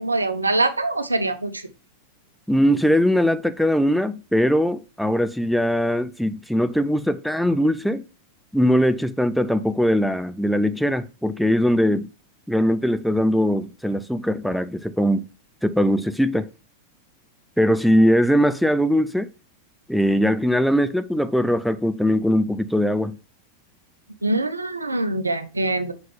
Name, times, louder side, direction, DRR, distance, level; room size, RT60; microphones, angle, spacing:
voice 1, 0.0-1.6 24.2-25.9, right 2 dB, 80° right, 0.7 m, -23 dB
voice 2, 2.5-8.0 8.5-12.1 12.5-15.2 15.6-16.5 17.6-19.3 19.9-23.2, equal, ahead, 0.5 m, -21 dB
5.5 x 5.1 x 3.4 m
figure-of-eight pair, 90°, 0 cm